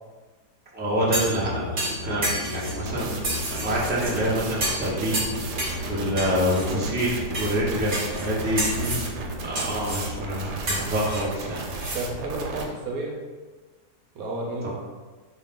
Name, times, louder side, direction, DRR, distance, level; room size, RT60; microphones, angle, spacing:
voice 1, 0.7-3.2 3.5-5.3 5.9-7.9 8.2-8.6 8.9-9.0 9.4-11.6, equal, 10° right, -7 dB, 0.4 m, -26 dB
sound 1, 0.8-12.1, left 3 dB, 65° left, 0.4 m, -36 dB
sound 2, 1.1-1.4 1.8-2.8 3.2-4.1 4.6-4.9 5.1-5.8 6.2-6.7 7.3-7.5 7.9-8.3 8.6-9.0 9.5-10.1 10.7-12.0 12.3-12.4, right 1 dB, 35° right, 1.0 m, -30 dB
sound 3, 2.9-12.6, right 4 dB, 85° right, 1.2 m, -35 dB
voice 2, 11.9-13.1 14.1-14.7, right 2 dB, 70° right, -2 dB, 1.0 m, -31 dB
4.0 x 2.3 x 3.6 m, 1.3 s
omnidirectional pair, 1.8 m